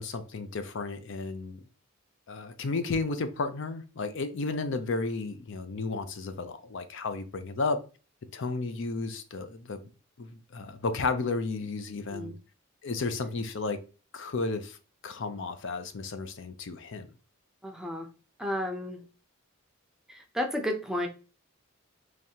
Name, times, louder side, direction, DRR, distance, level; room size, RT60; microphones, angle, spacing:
voice 1, 0.0-1.6 2.3-7.8 8.3-9.8 10.2-12.3 12.8-13.8 14.1-14.8 15.0-17.1, left 3 dB, 55° left, 0.5 m, -33 dB
voice 2, 17.6-18.1 18.4-19.0 20.1-21.1, left 1 dB, ahead, 0.6 m, -32 dB
4.0 x 3.2 x 2.9 m
head